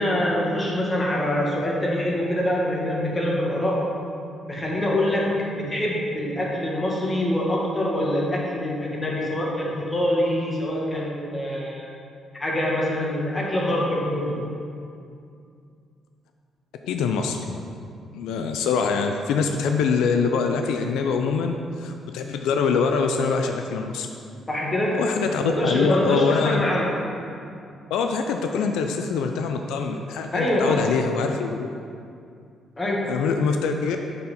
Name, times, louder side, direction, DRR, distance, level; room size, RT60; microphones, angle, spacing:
voice 1, 0.0-3.9 4.5-11.9 12.3-14.4 24.5-25.0 25.4-27.0 30.3-30.9 32.8-33.1, left 1 dB, 20° left, -3 dB, 1.6 m, -24 dB
voice 2, 16.8-17.5 18.1-24.1 24.9-26.6 27.9-31.7 33.1-34.0, left 5 dB, 90° left, 5 dB, 0.4 m, -24 dB
6.4 x 4.3 x 5.4 m, 2.4 s
cardioid pair, 90°, 0 cm